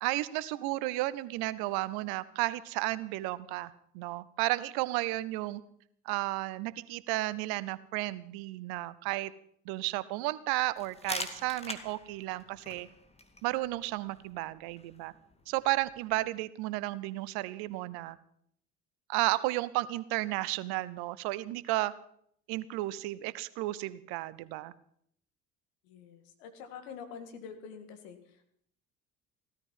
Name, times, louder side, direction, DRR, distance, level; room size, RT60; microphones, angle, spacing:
voice 1, 0.0-5.6 6.0-9.3 9.6-12.9 13.4-15.1 15.5-18.2 19.1-21.9 22.5-24.7, right 18 dB, 65° right, 18 dB, 0.9 m, -33 dB
sound 1, 10.8-16.3, left 2 dB, 15° left, 2.2 m, -45 dB
voice 2, 25.8-28.5, left 6 dB, 75° left, 7 dB, 2.1 m, -46 dB
16.5 x 13.0 x 5.6 m, 0.67 s
hypercardioid pair, 55°, 40 cm